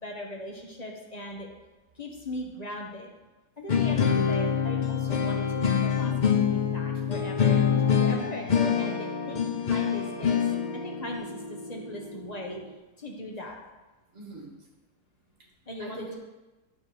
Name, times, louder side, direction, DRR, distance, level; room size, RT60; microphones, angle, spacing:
voice 1, 0.0-1.5 1.9-3.1 3.6-7.6 8.0-10.4 10.7-12.6 13.0-13.6 15.7-16.1, left 1 dB, 30° left, 0 dB, 1.0 m, -39 dB
sound 1, 3.7-12.6, left 7 dB, 80° left, 0.4 m, -26 dB
voice 2, 4.1-4.4 7.7-8.1 14.1-14.5 15.8-16.2, right 4 dB, 45° right, -1 dB, 1.9 m, -40 dB
8.5 x 4.3 x 6.7 m, 1.1 s
omnidirectional pair, 1.8 m